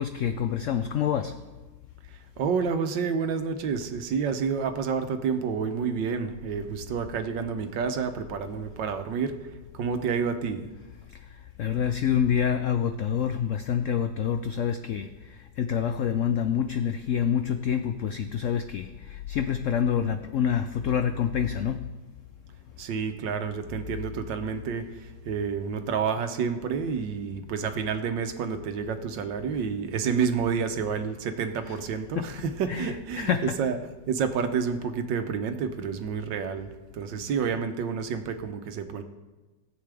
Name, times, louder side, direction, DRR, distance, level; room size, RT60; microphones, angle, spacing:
voice 1, 0.0-1.3 11.6-21.8 31.6-31.8 32.1-32.3 32.7-33.6, left 8 dB, 80° left, 8 dB, 0.6 m, -27 dB
voice 2, 2.1-9.4 9.7-10.7 22.8-33.8 34.1-39.0, right 6 dB, 85° right, 8 dB, 1.6 m, -29 dB
18.0 x 7.8 x 3.4 m, 1.2 s
omnidirectional pair, 1.9 m